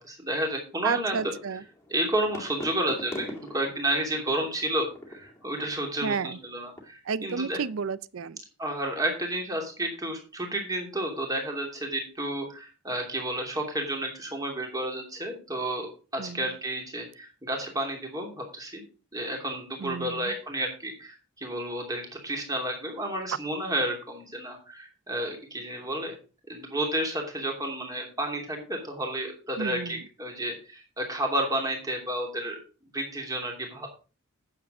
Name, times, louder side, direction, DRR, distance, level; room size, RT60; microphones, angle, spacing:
voice 1, 0.0-1.2 1.9-7.6 8.6-15.9 16.1-18.8 19.1-26.1 26.5-32.6 32.9-33.9, right 1 dB, 15° right, 2.8 m, -31 dB
voice 2, 0.8-1.6 6.0-6.4 7.1-8.4 16.2-16.4 19.8-20.3 29.6-30.0, right 5 dB, 65° right, 0.5 m, -31 dB
sound 1, 1.1-6.8, left 1 dB, 15° left, 2.2 m, -43 dB
9.4 x 7.4 x 4.9 m
head